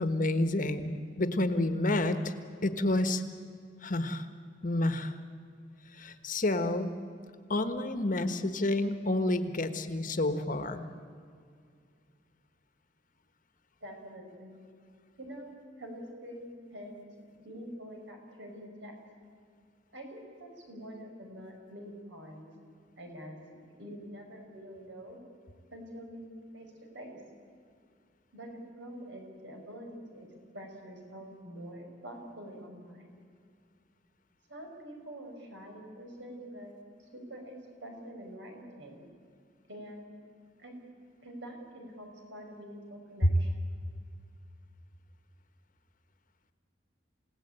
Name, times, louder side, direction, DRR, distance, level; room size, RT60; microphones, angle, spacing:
voice 1, 0.0-2.3 2.6-3.2 3.8-4.3 4.6-5.1 5.9-6.9 7.5-10.8 43.2-43.3, left 1 dB, 45° left, 9 dB, 1.4 m, -29 dB
voice 2, 13.8-14.6 15.2-15.5 15.8-17.0 17.3-18.9 19.9-22.5 23.0-23.4 23.8-25.2 25.7-27.2 28.3-29.9 30.1-30.3 30.5-33.1 34.5-37.5 37.8-39.0 39.7-40.1 40.6-40.8 41.2-43.5, equal, 75° right, 2 dB, 5.8 m, -46 dB
28.5 x 17.5 x 9.0 m, 2.2 s
head